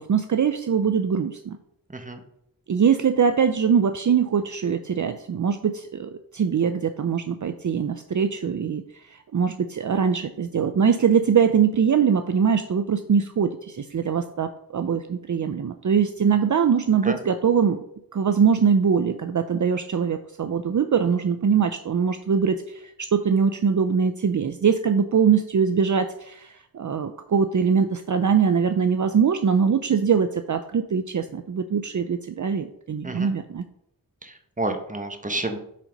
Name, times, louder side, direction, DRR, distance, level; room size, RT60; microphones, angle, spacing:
voice 1, 0.0-1.6 2.7-17.8 18.1-33.6, right 6 dB, 55° right, 8 dB, 0.5 m, -22 dB
voice 2, 34.2-35.6, right 2 dB, 20° right, 6 dB, 1.1 m, -30 dB
7.5 x 3.9 x 5.1 m, 0.76 s
wide cardioid pair, 40°, 36 cm